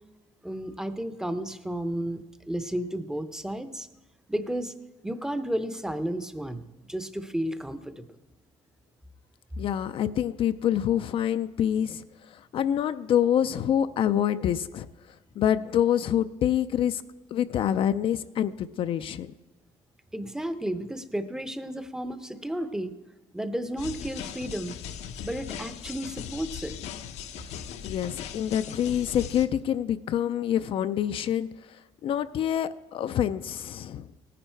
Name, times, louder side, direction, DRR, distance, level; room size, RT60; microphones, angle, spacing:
voice 1, 0.4-3.9 4.3-4.7 5.0-6.6 6.9-8.1 20.1-22.9 23.3-24.8 25.2-26.7, right 1 dB, 5° right, 11 dB, 0.6 m, -32 dB
voice 2, 9.6-12.0 12.5-14.9 15.4-17.0 17.3-19.3 27.8-31.5 32.0-34.1, left 10 dB, 50° left, 12 dB, 0.4 m, -26 dB
sound 1, 23.8-29.5, left 8 dB, 75° left, 0.8 m, -39 dB
17.5 x 10.0 x 4.5 m, 1.2 s
cardioid pair, 135°, 11 cm